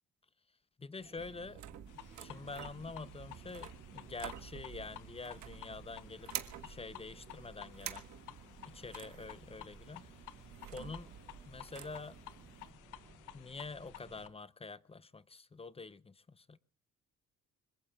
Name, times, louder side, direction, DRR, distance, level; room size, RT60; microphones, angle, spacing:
voice 1, 0.8-1.6 2.2-6.3 6.6-8.0 8.7-10.1 10.7-11.1 11.5-12.2 13.3-16.6, left 4 dB, 20° left, 0.7 m, -46 dB
sound 1, 1.0-14.3, right 3 dB, 35° right, 2.5 m, -60 dB
sound 2, 1.2-12.7, right 10 dB, 70° right, 1.4 m, -49 dB
sound 3, 1.9-14.3, left 14 dB, 90° left, 0.7 m, -54 dB
25.5 x 22.0 x 2.4 m
cardioid pair, 90°, 30 cm